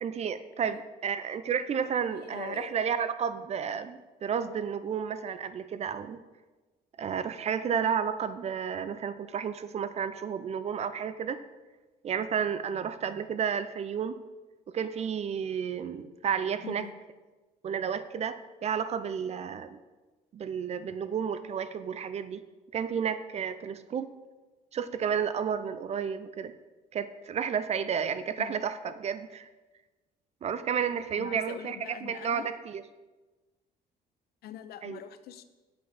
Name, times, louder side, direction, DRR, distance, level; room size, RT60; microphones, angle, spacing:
voice 1, 0.0-6.2 7.0-11.4 12.0-14.1 14.7-16.9 17.6-19.8 20.3-22.4 22.7-24.1 24.7-26.5 26.9-29.5 30.4-32.8 34.8-35.0, right 7 dB, 40° right, 13 dB, 0.5 m, -32 dB
voice 2, 2.1-2.8 16.6-17.0 28.4-28.6 31.2-32.5 34.4-35.4, left 11 dB, 70° left, 12 dB, 0.6 m, -43 dB
7.8 x 7.8 x 3.5 m, 1.2 s
cardioid pair, 110°, 17 cm